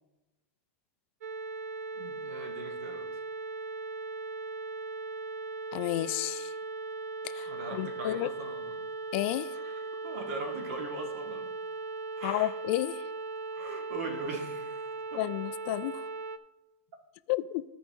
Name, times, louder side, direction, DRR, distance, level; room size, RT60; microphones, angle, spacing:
sound 1, 1.2-16.4, right 3 dB, 85° right, 0.4 m, -38 dB
voice 1, 1.9-3.2 7.5-8.8 9.5-11.5 12.2-12.5 13.5-15.2, right 2 dB, 65° right, 2.0 m, -41 dB
voice 2, 5.7-6.5 7.2-8.3 9.1-9.5 12.2-13.0 15.2-16.0 17.3-17.6, left 17 dB, 55° left, 0.4 m, -31 dB
14.5 x 4.9 x 3.6 m
hypercardioid pair, 130°, 8 cm